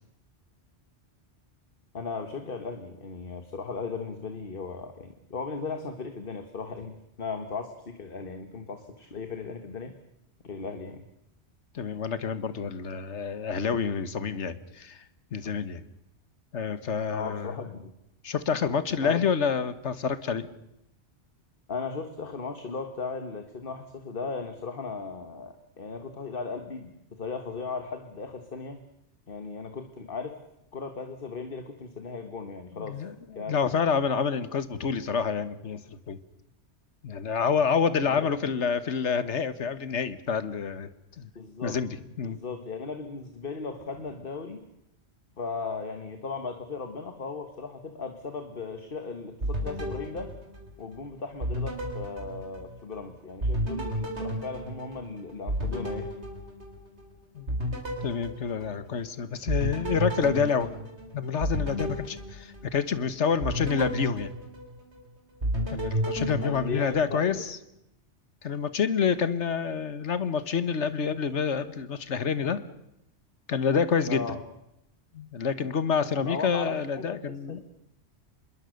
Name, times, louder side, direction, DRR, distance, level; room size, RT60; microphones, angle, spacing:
voice 1, 1.9-9.9 10.4-11.0 17.1-17.9 19.0-19.3 21.7-28.8 29.3-30.4 30.7-33.0 33.4-33.8 38.0-38.5 41.4-41.8 42.2-44.6 45.4-50.3 50.8-56.1 66.4-67.4 74.1-74.4 76.2-77.6, left 4 dB, 55° left, 7 dB, 1.7 m, -37 dB
voice 2, 11.7-15.0 15.3-15.8 16.5-17.5 18.2-20.4 32.8-35.8 36.1-36.2 37.0-40.9 41.2-41.3 41.6-41.9 42.2-42.4 57.3-57.5 58.0-60.7 61.1-64.3 65.7-67.6 68.4-72.6 73.5-74.2 75.1-77.6, left 6 dB, 90° left, 14 dB, 1.6 m, -28 dB
Loop Electro, 49.4-51.0 51.4-53.0 53.4-57.1 57.5-59.1 59.5-62.9 63.4-65.0 65.4-67.4, equal, 75° right, 4.6 m, -32 dB
26.0 x 21.5 x 6.5 m, 0.83 s
omnidirectional pair, 1.2 m